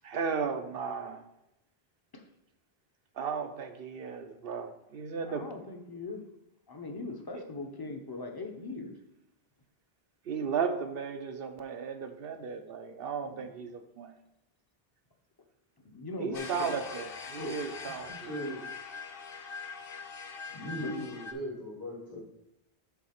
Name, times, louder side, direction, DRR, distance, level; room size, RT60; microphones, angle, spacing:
voice 1, 0.0-1.2 3.2-5.5 7.3-7.4 10.3-14.1 16.2-18.1, right 6 dB, 65° right, 7 dB, 0.9 m, -35 dB
voice 2, 5.3-6.2 6.7-9.0 13.2-13.5 15.8-16.8 20.8-21.1 22.1-22.2, left 3 dB, 25° left, 3 dB, 0.7 m, -40 dB
sound 1, 16.3-21.3, left 5 dB, 65° left, 0.9 m, -42 dB
voice 3, 18.1-18.6 20.5-22.2, equal, 80° left, -5 dB, 3.3 m, -38 dB
7.1 x 3.6 x 5.8 m, 0.87 s
omnidirectional pair, 1.1 m